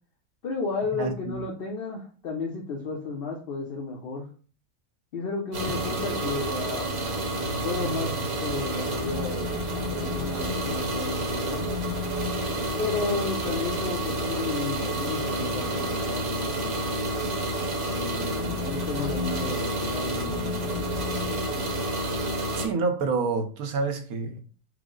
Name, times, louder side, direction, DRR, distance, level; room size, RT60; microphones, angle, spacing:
voice 1, 0.4-4.3 5.1-7.0 7.6-9.5 9.9-11.6 12.8-17.3 17.9-21.0, left 4 dB, 65° left, 0.5 m, -33 dB
voice 2, 1.0-1.4 5.7-5.8 22.6-24.4, right 4 dB, 70° right, 1.1 m, -28 dB
sound 1, 5.5-22.7, right 1 dB, 45° right, 1.1 m, -29 dB
4.7 x 2.0 x 3.7 m
omnidirectional pair, 1.7 m